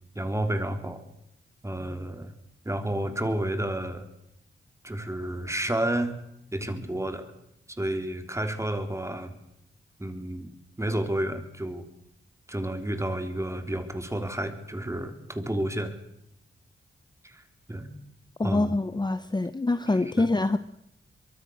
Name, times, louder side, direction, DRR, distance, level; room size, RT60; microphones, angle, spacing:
voice 1, 0.2-1.0 1.6-2.3 2.7-4.1 4.8-6.2 6.5-7.3 7.8-9.3 10.0-10.5 10.8-11.8 12.5-15.9 17.2-17.4 17.7-18.0 18.4-18.8 19.9-20.3, right 1 dB, 15° right, 7 dB, 3.6 m, -30 dB
voice 2, 18.4-20.6, left 2 dB, 20° left, 12 dB, 1.0 m, -25 dB
24.0 x 23.0 x 6.5 m, 0.81 s
cardioid pair, 65°, 21 cm